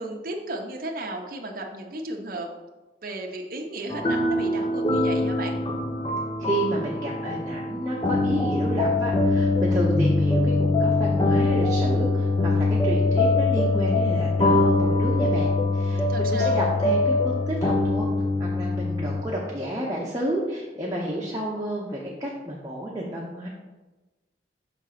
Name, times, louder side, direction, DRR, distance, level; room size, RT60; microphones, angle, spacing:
voice 1, 0.0-2.5 3.0-5.6 16.1-16.6, right 2 dB, 50° right, 1 dB, 0.7 m, -34 dB
sound 1, 3.9-19.2, left 2 dB, 25° left, 0.6 m, -23 dB
voice 2, 6.4-18.1 18.4-23.5, right 1 dB, 20° right, -5 dB, 0.8 m, -30 dB
5.9 x 3.7 x 5.8 m, 1.1 s
head